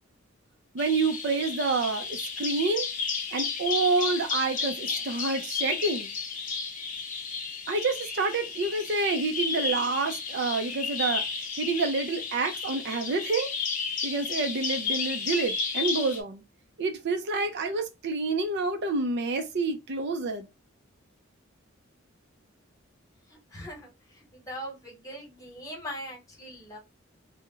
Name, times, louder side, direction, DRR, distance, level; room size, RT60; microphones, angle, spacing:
voice 1, 0.7-2.9 3.3-6.1 7.7-11.2 11.6-13.5 14.0-16.4 16.8-20.5, right 3 dB, 60° right, 0.5 m, -28 dB
Bird vocalization bird call bird song, 0.8-16.2, left 5 dB, 40° left, 0.6 m, -33 dB
voice 2, 23.3-26.8, equal, 15° left, 1.2 m, -41 dB
2.4 x 2.1 x 3.7 m
head